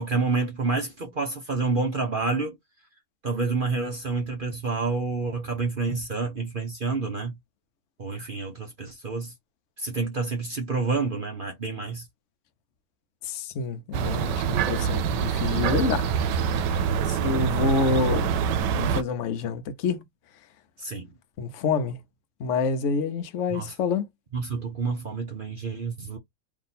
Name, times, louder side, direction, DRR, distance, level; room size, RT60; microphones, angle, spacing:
voice 1, 0.0-2.6 3.2-7.4 8.0-9.3 9.8-12.1 17.0-17.4 20.8-21.1 23.5-23.7 24.3-26.2, right 4 dB, 45° right, 0.7 m, -28 dB
voice 2, 13.2-16.1 16.7-16.8 17.2-18.3 18.7-20.0 21.4-22.0 22.4-24.1, left 5 dB, 55° left, 0.9 m, -27 dB
sound 1, 13.9-19.0, right 7 dB, 85° right, 1.3 m, -25 dB
3.5 x 2.7 x 4.1 m
omnidirectional pair, 1.9 m